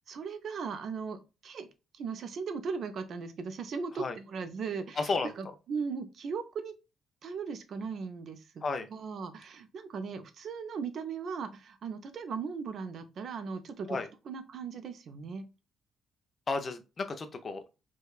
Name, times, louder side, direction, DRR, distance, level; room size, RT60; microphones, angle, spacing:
voice 1, 0.1-1.7 1.9-5.1 5.4-6.7 7.2-8.6 8.9-14.0 14.2-15.4, right 5 dB, 45° right, 9 dB, 0.5 m, -38 dB
voice 2, 5.0-5.3 8.6-8.9 13.9-14.1 16.5-17.6, left 4 dB, 25° left, 8 dB, 0.4 m, -32 dB
4.7 x 2.2 x 2.3 m, 0.29 s
cardioid pair, 180°, 0 cm